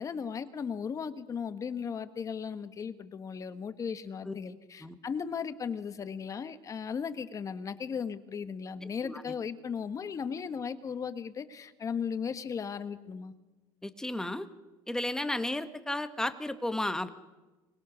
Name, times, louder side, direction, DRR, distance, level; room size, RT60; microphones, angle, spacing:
voice 1, 0.0-13.3, left 6 dB, 30° left, 10 dB, 1.4 m, -36 dB
voice 2, 8.8-9.3 13.8-14.5 14.9-17.1, left 1 dB, 5° left, 9 dB, 1.4 m, -33 dB
24.5 x 21.0 x 6.4 m, 1.1 s
cardioid pair, 130°, 11 cm